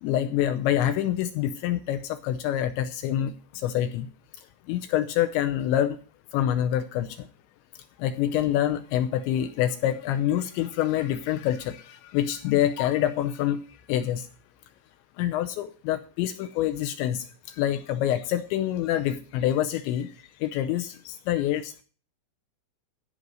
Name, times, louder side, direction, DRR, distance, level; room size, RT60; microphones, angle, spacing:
voice 1, 0.0-4.1 4.7-6.0 6.3-7.3 8.0-13.6 13.9-14.3 15.2-17.2 17.6-20.1 20.4-21.8, left 11 dB, 80° left, 8 dB, 2.7 m, -26 dB
13.5 x 5.2 x 7.8 m, 0.38 s
omnidirectional pair, 5.8 m